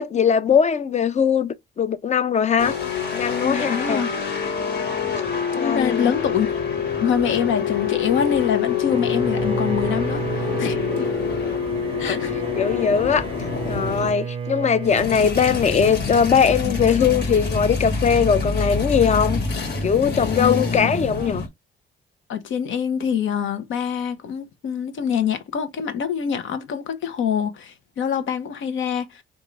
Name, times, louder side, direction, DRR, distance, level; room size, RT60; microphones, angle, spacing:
voice 1, 0.0-2.8 3.1-4.0 5.5-6.1 12.0-12.2 12.6-13.2 13.7-19.4 19.8-21.4, left 7 dB, 35° left, 0.6 m, -20 dB
sound 1, 2.6-14.1 14.8-21.5, left 5 dB, 55° left, 1.5 m, -26 dB
voice 2, 3.4-4.1 5.5-6.6 7.0-11.1 12.0-12.3 20.4-20.9 22.3-29.2, left 7 dB, 75° left, 1.0 m, -25 dB
Bowed string instrument, 8.9-15.2, right 6 dB, 25° right, 0.5 m, -32 dB
3.7 x 2.7 x 4.6 m
cardioid pair, 90°, 20 cm